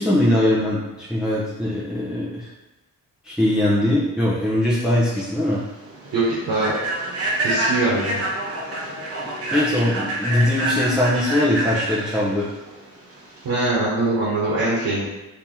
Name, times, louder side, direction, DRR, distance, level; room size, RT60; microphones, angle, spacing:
voice 1, 0.0-2.5 3.2-5.6 9.5-12.5, left 1 dB, ahead, -7 dB, 0.7 m, -21 dB
Human voice / Train, 5.0-13.7, right 2 dB, 40° right, 0.9 m, -27 dB
voice 2, 6.1-6.7 7.4-8.2 13.4-15.0, right 2 dB, 90° right, -7 dB, 1.0 m, -22 dB
2.8 x 2.8 x 3.6 m, 1.1 s
cardioid pair, 75°, 34 cm